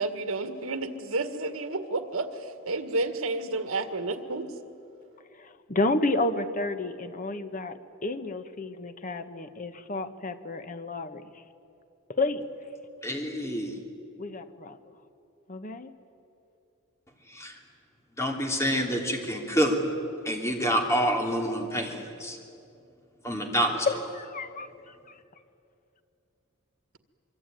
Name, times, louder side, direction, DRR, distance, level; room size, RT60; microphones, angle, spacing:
voice 1, 0.0-4.5, right 3 dB, 80° right, 8 dB, 1.9 m, -31 dB
voice 2, 5.4-11.3 12.1-12.4 14.2-14.8 15.5-15.9 23.9-24.9, left 2 dB, 35° left, 9 dB, 1.3 m, -31 dB
voice 3, 13.0-13.8 17.3-17.6 18.2-19.8 20.2-22.4 23.2-23.9, equal, 15° left, 2 dB, 3.2 m, -27 dB
25.0 x 24.0 x 9.3 m, 2.7 s
head